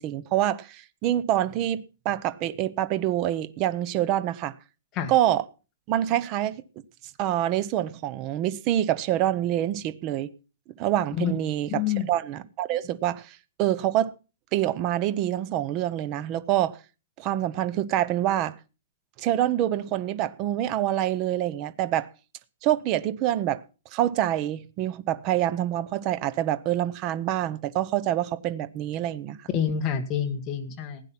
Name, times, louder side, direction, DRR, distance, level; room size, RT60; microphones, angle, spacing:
voice 1, 0.0-4.5 5.1-5.4 5.9-6.6 7.2-10.3 10.8-14.1 14.5-16.8 17.2-18.5 19.2-22.1 22.6-23.6 23.9-29.4, right 12 dB, 25° right, 0.7 m, -26 dB
voice 2, 11.7-12.1 29.5-31.0, left 8 dB, 20° left, 1.9 m, -27 dB
16.0 x 9.9 x 5.9 m
hypercardioid pair, 175°, 0 cm